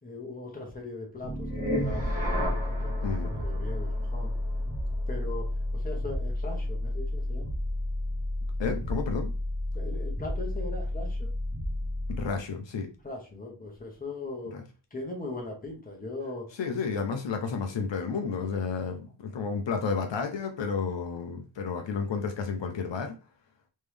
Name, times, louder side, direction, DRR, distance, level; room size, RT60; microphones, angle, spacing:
voice 1, 0.0-1.5 1.8-2.0 2.4-4.3 5.1-7.5 9.7-11.3 13.0-14.5 14.9-16.5, left 2 dB, 20° left, 1.1 m, -39 dB
sound 1, 1.2-12.4, left 1 dB, 15° right, 1.3 m, -31 dB
voice 2, 3.0-3.3 8.6-9.3 12.1-12.9 14.5-14.6 16.5-23.2, left 5 dB, 70° left, 0.7 m, -31 dB
3.5 x 3.1 x 3.4 m
wide cardioid pair, 155°, 45 cm